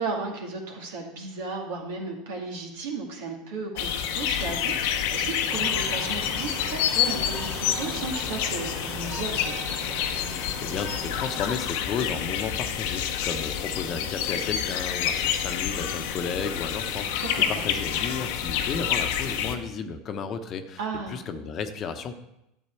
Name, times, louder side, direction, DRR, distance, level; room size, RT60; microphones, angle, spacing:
voice 1, 0.0-9.6 17.2-17.6 20.8-21.2, right 3 dB, 70° right, 1 dB, 2.1 m, -34 dB
sound 1, 3.8-19.6, left 9 dB, 65° left, 0.9 m, -28 dB
sound 2, 5.5-11.6, right 3 dB, 50° right, 2.5 m, -40 dB
voice 2, 10.3-20.8 21.1-22.2, left 5 dB, 40° left, 8 dB, 1.0 m, -33 dB
11.5 x 7.3 x 4.5 m, 0.83 s
hypercardioid pair, 80°, 0 cm